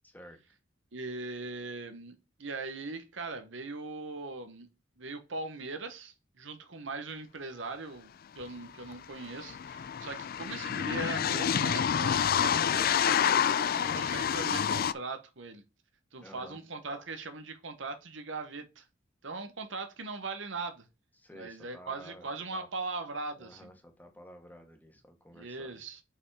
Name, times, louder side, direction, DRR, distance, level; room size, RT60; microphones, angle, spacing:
voice 1, 0.0-0.4 16.2-16.6 21.2-22.7 23.4-25.8, equal, 10° left, 1.5 m, -52 dB
voice 2, 0.9-4.7 5.0-15.6 16.1-18.8 19.2-20.8 21.3-23.7 25.3-26.0, right 3 dB, 70° right, 1.2 m, -40 dB
sound 1, 8.4-8.5 8.7-14.9, left 8 dB, 50° left, 0.4 m, -28 dB
5.6 x 5.4 x 4.9 m
head